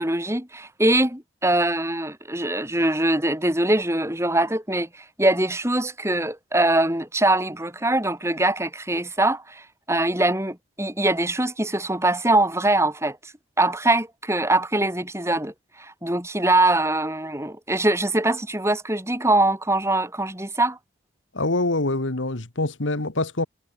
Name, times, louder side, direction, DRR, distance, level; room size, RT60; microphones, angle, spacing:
voice 1, 0.0-13.3 13.6-20.8, right 1 dB, 15° right, 6.5 m, -23 dB
voice 2, 21.3-23.5, left 2 dB, 80° left, 1.9 m, -25 dB
head